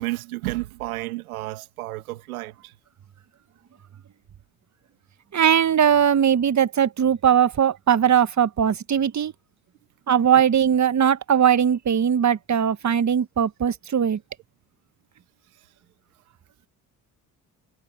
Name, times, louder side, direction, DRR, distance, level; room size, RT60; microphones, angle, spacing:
voice 1, 0.0-2.7, right 19 dB, 85° right, 2.4 m, -31 dB
voice 2, 5.3-9.3 10.1-14.2, right 8 dB, 40° right, 1.5 m, -20 dB
hypercardioid pair, 50°, 42 cm